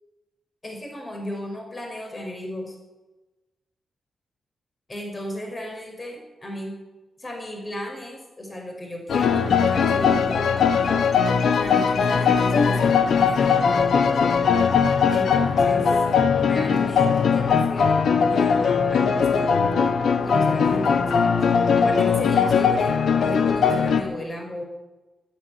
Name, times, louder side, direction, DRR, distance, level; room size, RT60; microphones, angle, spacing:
voice 1, 0.6-2.8 4.9-6.8 7.2-11.0 11.6-13.9 15.1-16.0 16.4-19.6 20.2-24.6, equal, 30° left, 1 dB, 5.5 m, -35 dB
sound 1, 9.1-24.0, left 6 dB, 80° left, 1.3 m, -20 dB
13.0 x 11.5 x 9.5 m, 1.1 s
cardioid pair, 80°, 0 cm